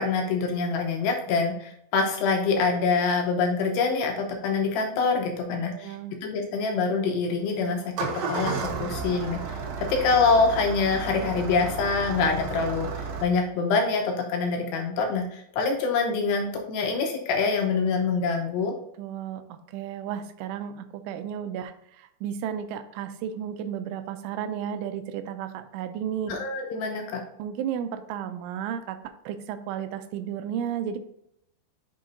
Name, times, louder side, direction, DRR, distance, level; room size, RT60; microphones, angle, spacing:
voice 1, 0.0-6.0 6.2-7.8 8.3-9.4 9.8-18.7 26.3-27.2, left 4 dB, 75° left, 2 dB, 2.6 m, -25 dB
voice 2, 5.5-6.2 19.0-26.4 27.4-31.0, right 9 dB, 90° right, 9 dB, 3.0 m, -33 dB
Engine starting, 7.8-13.2, right 4 dB, 70° right, 2.4 m, -32 dB
9.0 x 5.7 x 2.6 m, 0.77 s
omnidirectional pair, 5.4 m